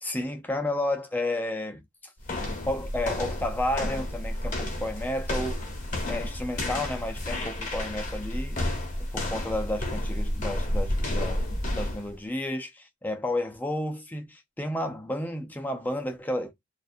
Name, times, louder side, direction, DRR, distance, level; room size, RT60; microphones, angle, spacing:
voice 1, 0.0-1.8 2.7-5.6 6.1-8.6 9.1-16.5, left 1 dB, 10° left, 0.4 m, -31 dB
sound 1, 2.2-12.1, left 1 dB, 40° left, 0.8 m, -31 dB
2.4 x 2.2 x 2.5 m
head